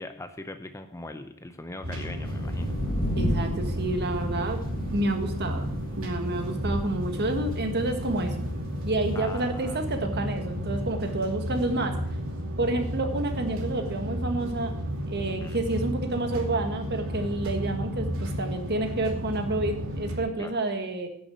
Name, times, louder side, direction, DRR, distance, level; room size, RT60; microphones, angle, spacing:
voice 1, 0.0-2.8 9.1-9.8 15.3-15.7 20.4-20.6, left 2 dB, 15° left, 9 dB, 0.6 m, -40 dB
sound 1, 1.8-20.2, equal, 65° right, 2.6 m, -33 dB
sound 2, 2.2-9.3, equal, 45° left, 1.6 m, -34 dB
voice 2, 3.1-4.6 4.9-8.3 8.8-11.9 12.6-14.7 15.1-21.1, right 2 dB, 50° right, 6 dB, 1.7 m, -29 dB
10.5 x 7.0 x 7.6 m, 0.67 s
head